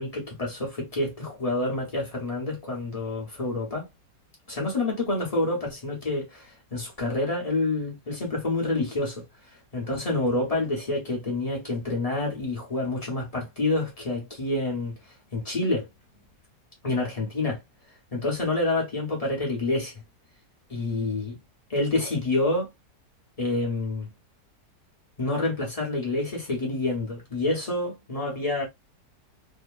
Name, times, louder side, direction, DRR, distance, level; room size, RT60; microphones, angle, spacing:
voice 1, 0.0-3.9 4.5-9.2 9.7-14.9 15.3-15.9 16.8-17.6 18.1-19.9 20.7-21.4 21.7-22.7 23.4-24.1 25.2-28.6, left 2 dB, 30° left, 0.7 m, -28 dB
2.7 x 2.7 x 2.3 m
omnidirectional pair, 1.8 m